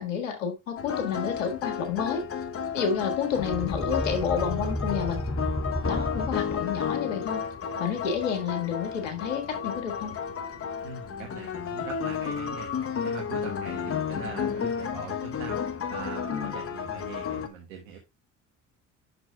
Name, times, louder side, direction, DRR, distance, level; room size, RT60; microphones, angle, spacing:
voice 1, 0.0-2.2 2.7-5.2 5.9-7.4 7.8-10.1 16.3-16.5, left 7 dB, 85° left, 5 dB, 1.7 m, -30 dB
sound 1, 0.8-17.5, left 7 dB, 35° left, 1.0 m, -32 dB
sound 2, 3.3-7.1, equal, 5° left, 0.5 m, -32 dB
voice 2, 10.8-12.7 13.0-15.6 15.9-18.0, right 6 dB, 85° right, 0 dB, 1.3 m, -42 dB
9.6 x 6.2 x 2.3 m, 0.22 s
hypercardioid pair, 60°, 38 cm